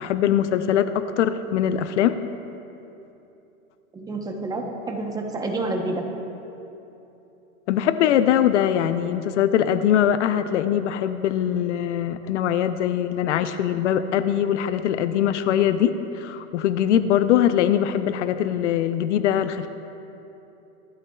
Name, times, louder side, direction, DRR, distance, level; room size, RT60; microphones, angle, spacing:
voice 1, 0.0-2.2 7.7-19.7, left 10 dB, 55° left, 11 dB, 0.6 m, -22 dB
voice 2, 3.9-6.1, right 2 dB, 10° right, 2 dB, 0.8 m, -28 dB
24.5 x 12.5 x 2.3 m, 2.9 s
hypercardioid pair, 140°, 43 cm